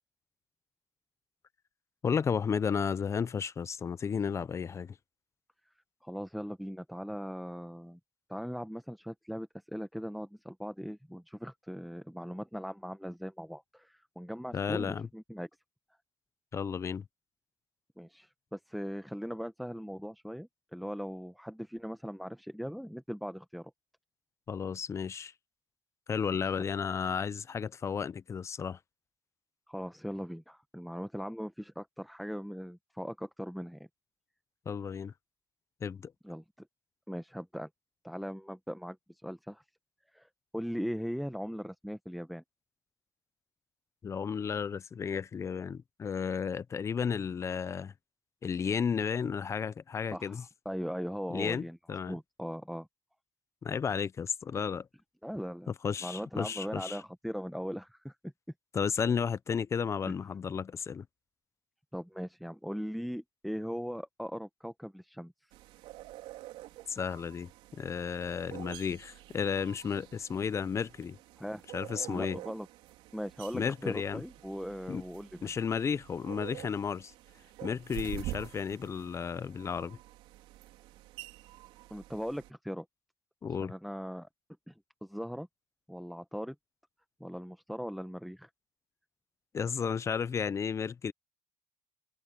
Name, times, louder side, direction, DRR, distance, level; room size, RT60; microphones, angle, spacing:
voice 1, 2.0-5.0 14.5-15.1 16.5-17.1 24.5-25.3 26.1-28.8 34.7-35.1 35.8-36.1 44.0-47.9 48.4-50.4 51.3-52.2 53.6-54.9 55.7-57.0 58.7-61.1 66.9-71.2 71.7-72.4 73.5-74.2 74.9-75.0 75.4-77.1 77.6-80.0 83.4-83.7 89.5-91.1, left 6 dB, 30° left, 0.8 m, -33 dB
voice 2, 6.0-8.0 8.3-15.5 18.0-23.7 26.3-26.4 29.7-33.8 36.2-36.7 37.1-37.7 38.0-39.6 40.1-42.4 50.1-51.8 52.1-52.9 55.2-55.7 56.0-58.3 61.9-65.3 71.4-71.6 72.1-72.7 73.1-75.5 81.9-82.8 83.6-84.3 84.7-84.8 85.0-85.5 85.9-86.5 87.2-88.5, equal, ahead, 1.1 m, -39 dB
sound 1, 65.5-82.5, right 16 dB, 75° right, 4.2 m, -48 dB
supercardioid pair, 95°, 9 cm